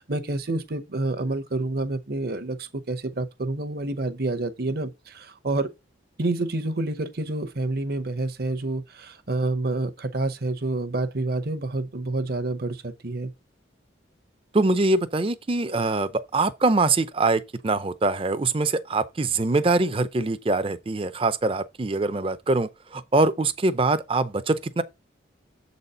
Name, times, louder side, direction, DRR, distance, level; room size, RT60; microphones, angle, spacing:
voice 1, 0.0-5.7 6.2-13.3, right 2 dB, 50° right, 0.8 m, -28 dB
voice 2, 14.5-24.8, right 3 dB, 30° right, 0.5 m, -23 dB
7.3 x 4.1 x 5.4 m
head